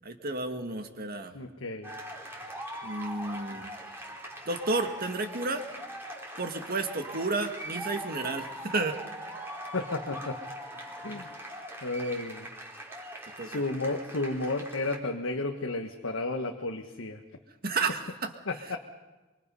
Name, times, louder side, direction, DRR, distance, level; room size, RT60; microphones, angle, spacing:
voice 1, 0.0-1.3 2.8-3.8 4.5-5.6 6.4-9.0 13.4-13.6 17.6-18.3, right 3 dB, 50° right, 6 dB, 2.0 m, -31 dB
voice 2, 1.3-1.9 9.7-10.4 11.0-11.3 11.8-12.5 13.4-17.2 18.5-18.8, left 2 dB, 85° left, 4 dB, 1.4 m, -32 dB
sound 1, 1.8-15.0, right 1 dB, 10° right, 3.5 m, -41 dB
25.0 x 24.0 x 5.5 m, 1.2 s
head